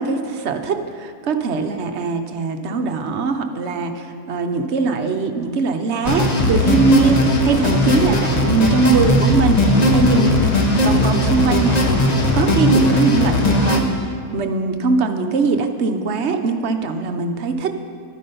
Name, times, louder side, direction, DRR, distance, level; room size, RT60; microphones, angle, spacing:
voice 1, 0.0-10.4 10.8-13.8 14.3-17.8, right 4 dB, 55° right, 6 dB, 0.9 m, -21 dB
sound 1, 6.0-13.8, left 1 dB, 30° left, 1.0 m, -17 dB
11.5 x 9.8 x 5.4 m, 2.2 s
omnidirectional pair, 1.5 m